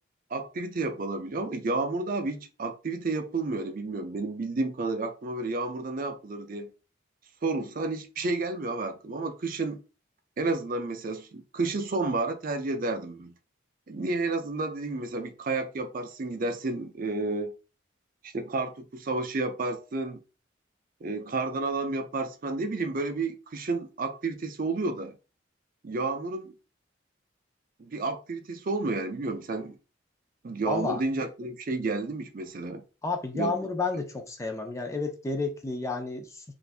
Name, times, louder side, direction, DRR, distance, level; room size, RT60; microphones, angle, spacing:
voice 1, 0.3-6.7 7.4-9.8 10.4-13.3 13.9-17.5 18.2-20.2 21.0-25.2 25.8-26.5 27.8-29.8 30.4-32.8 33.3-33.5, right 3 dB, 45° right, 0.5 m, -31 dB
voice 2, 30.7-31.0 33.0-36.4, left 3 dB, 15° left, 0.4 m, -31 dB
2.5 x 2.5 x 3.3 m
head